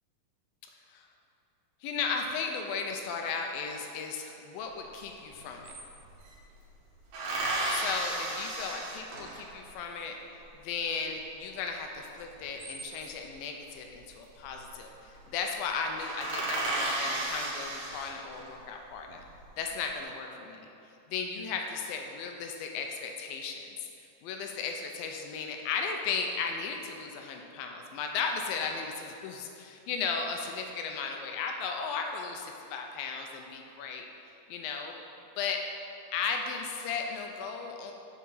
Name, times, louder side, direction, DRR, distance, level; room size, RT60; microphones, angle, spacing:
voice 1, 1.8-5.7 7.7-10.2 10.5-19.2 19.6-20.7 21.1-34.1 34.5-34.9 35.4-35.6 36.1-37.9, left 5 dB, 90° left, 3 dB, 2.5 m, -35 dB
sound 1, 5.0-5.1 5.3-6.4 7.1-9.6 12.3-13.3 14.5-14.8 15.1-15.3 15.6-15.7 16.0-18.5 19.1-19.8, right 2 dB, 80° right, 2.8 m, -34 dB
6.9 x 6.0 x 5.6 m, 2.6 s
omnidirectional pair, 4.0 m